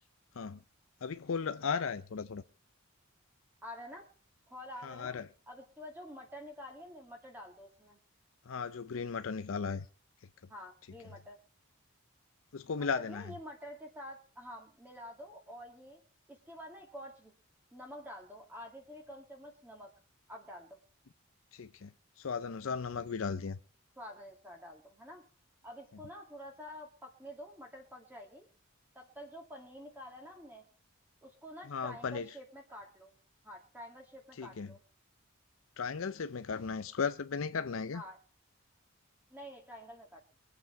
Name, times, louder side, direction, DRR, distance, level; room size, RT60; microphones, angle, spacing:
voice 1, 1.0-2.4 4.8-5.3 8.5-9.9 12.5-13.3 21.5-21.9 22.2-23.6 31.7-32.3 34.4-34.7 35.8-38.0, left 5 dB, 70° left, 0.5 m, -36 dB
voice 2, 3.6-4.1 4.5-5.2 5.5-8.0 10.5-11.4 12.8-16.0 16.3-17.3 17.7-19.9 20.3-20.8 24.0-25.3 25.6-28.5 28.9-30.6 31.2-33.1 33.4-34.8 37.9-38.2 39.3-40.2, equal, 10° right, 2.2 m, -48 dB
23.0 x 8.0 x 4.5 m
head